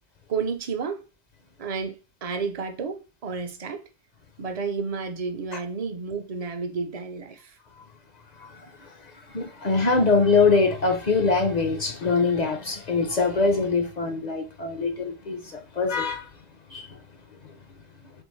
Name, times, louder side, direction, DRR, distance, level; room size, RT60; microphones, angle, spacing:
voice 1, 0.3-1.0 1.6-3.8 4.4-7.5, right 5 dB, 45° right, 0.6 m, -31 dB
voice 2, 8.4-8.9 9.3-16.3 16.7-16.9, left 4 dB, 50° left, 0.6 m, -23 dB
3.7 x 3.5 x 3.1 m
omnidirectional pair, 1.1 m